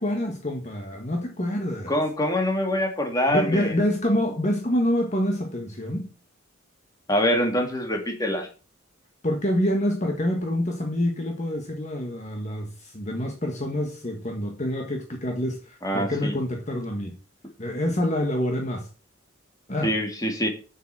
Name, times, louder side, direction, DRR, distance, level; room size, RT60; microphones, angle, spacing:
voice 1, 0.0-2.0 3.3-6.1 9.2-17.1 17.6-18.9 19.7-19.9, left 1 dB, 35° left, 1.5 m, -26 dB
voice 2, 1.9-3.9 7.1-8.5 15.8-16.4 19.8-20.5, equal, 15° left, 2.2 m, -24 dB
7.6 x 7.3 x 7.5 m
head